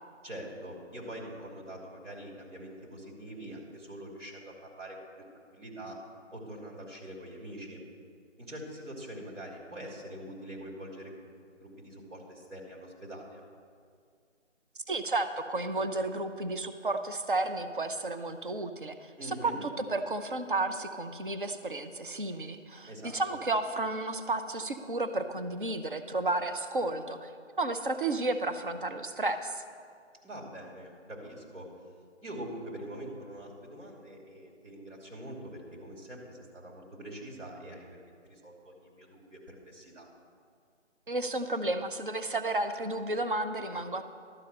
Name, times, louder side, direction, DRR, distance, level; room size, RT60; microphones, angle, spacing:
voice 1, 0.2-5.0 5.5-6.0 6.3-7.8 8.4-11.1 11.6-13.4 19.2-19.6 22.9-23.4 30.2-31.7 32.2-40.1, right 1 dB, 75° right, -2 dB, 2.9 m, -44 dB
voice 2, 14.9-29.6 41.1-44.0, right 2 dB, 45° right, 8 dB, 0.6 m, -32 dB
12.0 x 5.5 x 7.4 m, 2.2 s
figure-of-eight pair, 170°, 37 cm